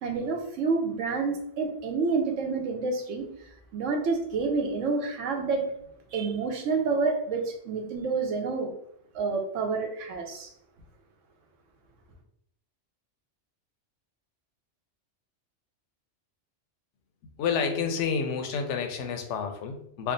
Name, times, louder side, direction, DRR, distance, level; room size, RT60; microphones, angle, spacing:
voice 1, 0.0-3.3 3.7-5.7 6.1-8.7 9.1-10.5, right 4 dB, 90° right, 4 dB, 1.1 m, -28 dB
voice 2, 17.4-20.1, left 6 dB, 75° left, 6 dB, 0.9 m, -29 dB
3.5 x 2.1 x 3.8 m, 0.74 s
omnidirectional pair, 1.2 m